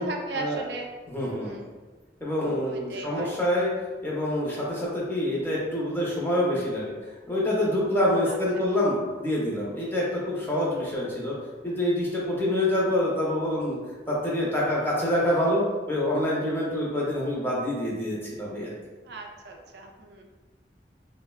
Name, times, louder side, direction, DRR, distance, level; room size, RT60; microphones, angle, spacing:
voice 1, 0.0-0.9 1.2-1.7 2.6-3.3 8.2-8.4 19.1-20.2, right 3 dB, 70° right, 2 dB, 0.3 m, -37 dB
voice 2, 1.1-1.6 2.2-3.7 4.0-6.9 7.3-11.3 11.6-13.8 14.1-18.8, left 1 dB, 10° left, -5 dB, 0.5 m, -26 dB
3.3 x 2.0 x 2.2 m, 1.3 s
head